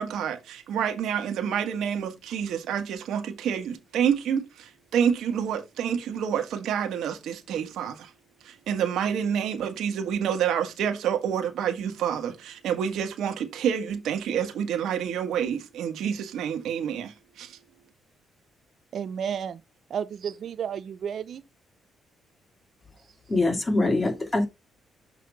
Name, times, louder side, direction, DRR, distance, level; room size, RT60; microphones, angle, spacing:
voice 1, 0.0-8.1 8.4-17.6, right 8 dB, 75° right, 1.5 m, -28 dB
voice 2, 18.9-19.6 19.9-21.4, right 8 dB, 60° right, 0.5 m, -32 dB
voice 3, 23.3-24.5, left 2 dB, 20° left, 2.2 m, -23 dB
6.5 x 3.8 x 5.3 m
cardioid pair, 90°, 0 cm